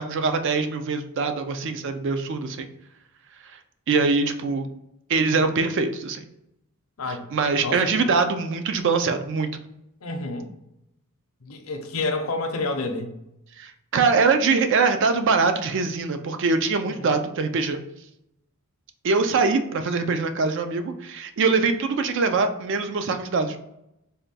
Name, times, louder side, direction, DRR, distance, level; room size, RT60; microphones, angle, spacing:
voice 1, 0.0-2.7 3.9-4.7 5.1-6.2 7.3-9.5 13.6-17.8 19.0-23.6, right 4 dB, 55° right, 8 dB, 0.4 m, -23 dB
voice 2, 7.0-7.3 7.6-7.9 10.0-10.5 11.4-13.1 16.9-17.2, left 3 dB, 65° left, 5 dB, 0.6 m, -29 dB
3.5 x 2.2 x 4.0 m, 0.83 s
head